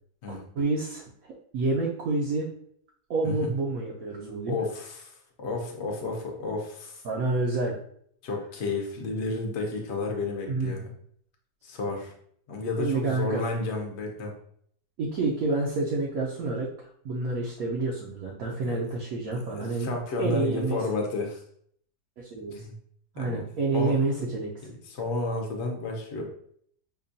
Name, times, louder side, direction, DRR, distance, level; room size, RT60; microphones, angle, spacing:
voice 1, 0.3-1.1 1.5-2.5 3.1-4.6 7.0-7.8 10.5-10.8 12.8-13.4 15.0-19.9 20.2-20.8 22.2-22.5 23.1-24.5, right 3 dB, 65° right, -3 dB, 1.0 m, -28 dB
voice 2, 4.5-6.9 8.2-10.9 11.6-12.1 12.5-14.3 18.6-18.8 19.3-21.4 22.5-22.7 23.2-23.4 23.7-24.0 24.9-26.2, left 3 dB, 55° left, 1 dB, 0.9 m, -32 dB
5.1 x 2.3 x 2.6 m, 0.65 s
omnidirectional pair, 1.8 m